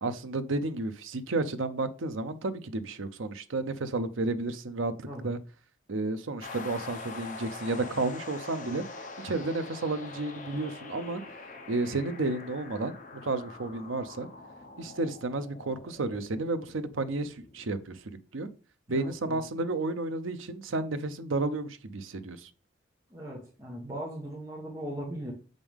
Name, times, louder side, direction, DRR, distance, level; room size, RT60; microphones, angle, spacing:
voice 1, 0.0-5.4 5.9-8.8 9.2-11.2 11.7-12.9 13.2-14.3 14.8-18.5 18.9-22.5, right 2 dB, 90° right, 10 dB, 0.7 m, -32 dB
sound 1, 6.4-18.0, left 3 dB, 40° left, 1.2 m, -45 dB
voice 2, 18.9-19.4 23.1-25.3, right 1 dB, 20° right, -3 dB, 1.5 m, -39 dB
7.2 x 5.3 x 3.6 m, 0.35 s
head